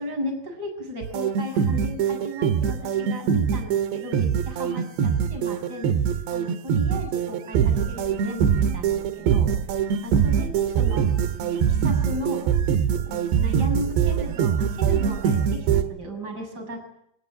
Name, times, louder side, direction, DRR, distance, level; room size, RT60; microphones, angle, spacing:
voice 1, 0.0-5.9 6.3-9.5 10.0-11.1 11.5-12.4 13.0-16.9, equal, 20° right, 4 dB, 7.5 m, -35 dB
sound 1, 1.0-15.8, right 8 dB, 75° right, 3.7 m, -23 dB
25.5 x 21.0 x 8.8 m, 0.72 s
omnidirectional pair, 5.2 m